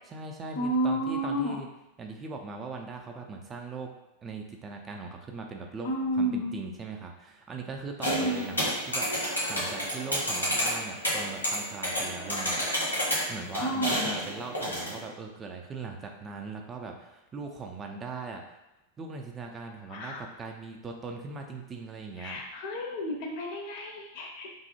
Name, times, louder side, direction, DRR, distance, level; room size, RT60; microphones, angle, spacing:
voice 1, 0.0-1.7 2.0-3.9 4.2-12.9 13.3-18.4 19.0-22.4, right 4 dB, 20° right, 2 dB, 0.3 m, -40 dB
voice 2, 0.5-1.6 5.8-6.6 8.1-8.6 13.6-14.1 19.9-20.2 22.2-24.5, right 1 dB, 45° left, 0 dB, 0.5 m, -31 dB
sound 1, 8.0-15.0, equal, 85° left, 0.9 m, -30 dB
2.6 x 2.0 x 2.8 m, 0.94 s
figure-of-eight pair, 90°, 0 cm